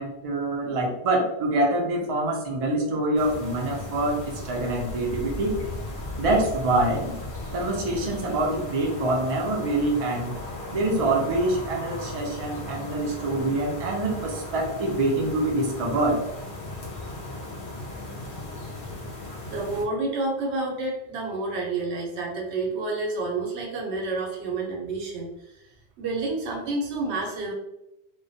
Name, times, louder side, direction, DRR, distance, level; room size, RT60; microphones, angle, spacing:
voice 1, 0.0-5.6 6.2-7.1 7.5-10.3 10.7-16.2, right 2 dB, 45° right, 0 dB, 0.5 m, -25 dB
sound 1, 3.2-19.9, left 2 dB, 60° left, 0.7 m, -36 dB
voice 2, 19.5-25.3 26.0-27.5, right 3 dB, 90° right, 0 dB, 1.0 m, -29 dB
2.2 x 2.1 x 2.6 m, 0.85 s
omnidirectional pair, 1.1 m